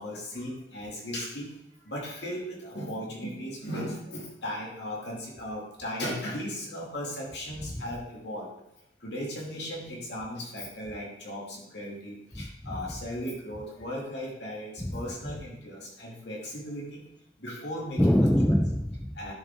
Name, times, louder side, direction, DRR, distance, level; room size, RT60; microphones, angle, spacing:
voice 1, 0.0-1.5 1.8-8.5 9.0-17.0 17.4-18.0 19.2-19.3, equal, 70° left, -3 dB, 2.8 m, -37 dB
voice 2, 7.6-7.9 12.3-13.0 14.8-15.4 18.0-19.2, equal, 5° left, 6 dB, 0.4 m, -26 dB
10.0 x 7.2 x 3.8 m, 0.85 s
head